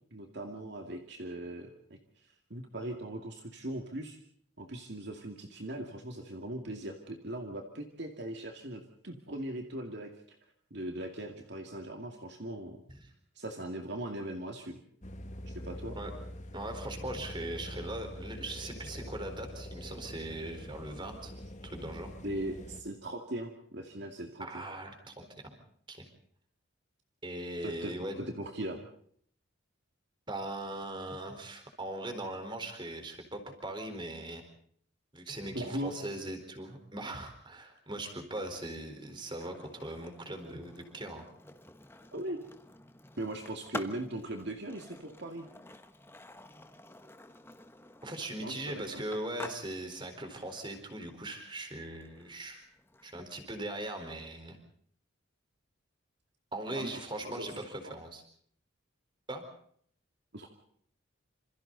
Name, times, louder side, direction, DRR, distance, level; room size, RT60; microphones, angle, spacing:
voice 1, 0.1-4.2 4.6-10.4 10.7-12.8 13.4-14.8 15.5-16.0 22.2-24.6 27.6-28.9 35.5-35.9 42.1-42.4 43.2-45.5 48.4-49.0 56.7-57.5 57.8-57.9 60.3-60.5, right 1 dB, 55° right, 3 dB, 2.3 m, -39 dB
sound 1, 15.0-22.8, equal, 35° left, 2.0 m, -44 dB
voice 2, 16.5-21.3 21.6-22.1 24.4-25.5 25.9-26.1 27.2-28.2 30.3-34.4 35.1-41.3 48.0-52.6 53.0-54.6 56.5-58.2 59.3-59.4, right 1 dB, 25° right, 5 dB, 4.3 m, -40 dB
Skateboard, 38.4-54.3, left 2 dB, 10° left, 1.2 m, -50 dB
27.5 x 27.5 x 4.0 m, 0.63 s
head